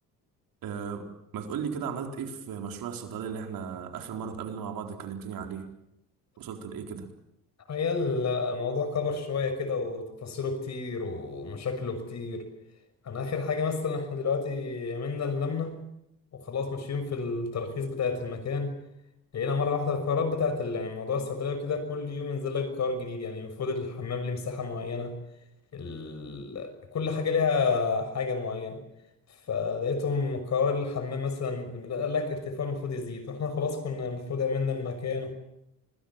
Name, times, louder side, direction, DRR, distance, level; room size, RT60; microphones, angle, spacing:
voice 1, 0.6-1.1 1.3-5.7 6.4-7.1, right 7 dB, 70° right, 4 dB, 4.3 m, -36 dB
voice 2, 7.7-12.5 13.0-15.8 16.3-18.7 19.3-25.2 25.7-28.8 29.5-35.3, left 4 dB, 50° left, 10 dB, 6.2 m, -30 dB
26.0 x 21.0 x 7.4 m, 0.83 s
cardioid pair, 110°, 36 cm